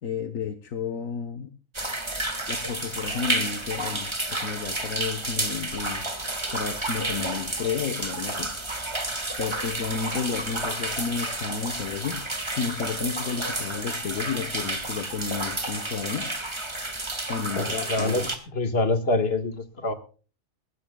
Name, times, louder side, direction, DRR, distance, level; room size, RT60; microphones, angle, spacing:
voice 1, 0.0-1.5 2.5-6.1 6.5-8.5 9.4-12.2 12.5-16.3 17.3-18.3, left 6 dB, 70° left, 1.4 m, -32 dB
sound 1, 1.7-18.4, right 2 dB, 20° right, 1.9 m, -31 dB
voice 2, 17.5-18.2 18.5-19.9, left 2 dB, 45° left, 1.9 m, -25 dB
20.0 x 16.0 x 2.3 m
omnidirectional pair, 1.5 m